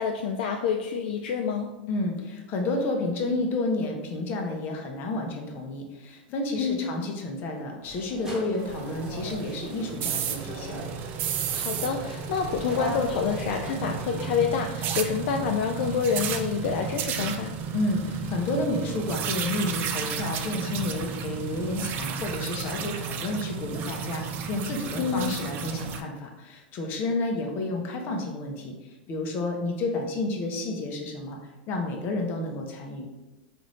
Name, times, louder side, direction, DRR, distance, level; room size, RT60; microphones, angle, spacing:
voice 1, 0.0-1.7 6.6-6.9 11.5-17.6 25.0-25.4, left 6 dB, 60° left, 3 dB, 0.3 m, -27 dB
voice 2, 1.9-10.8 17.7-31.4 31.7-33.1, left 2 dB, 40° left, 2 dB, 0.8 m, -30 dB
sound 1, 7.8-14.3, right 1 dB, 10° right, 1.2 m, -40 dB
sound 2, 8.6-26.0, right 7 dB, 40° right, 0.4 m, -33 dB
3.9 x 2.6 x 3.1 m, 1.1 s
hypercardioid pair, 115°, 5 cm